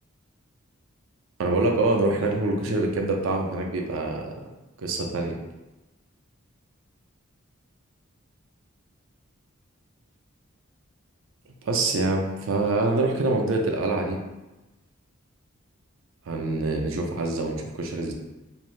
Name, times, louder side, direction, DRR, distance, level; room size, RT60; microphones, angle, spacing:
voice 1, 1.4-4.3 4.8-5.4 11.7-14.2 16.3-18.1, right 2 dB, 65° right, 1 dB, 0.4 m, -25 dB
2.6 x 2.0 x 3.0 m, 1.0 s
head